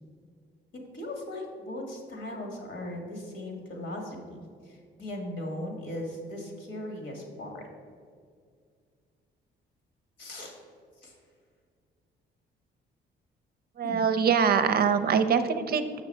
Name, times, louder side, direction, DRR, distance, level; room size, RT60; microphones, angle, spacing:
voice 1, 0.7-7.7 10.2-10.6 11.0-11.1 13.8-14.0, left 1 dB, 65° left, 2 dB, 1.7 m, -38 dB
voice 2, 13.8-16.0, right 6 dB, 50° right, 10 dB, 0.5 m, -24 dB
6.2 x 6.1 x 4.3 m, 2.1 s
cardioid pair, 90°, 20 cm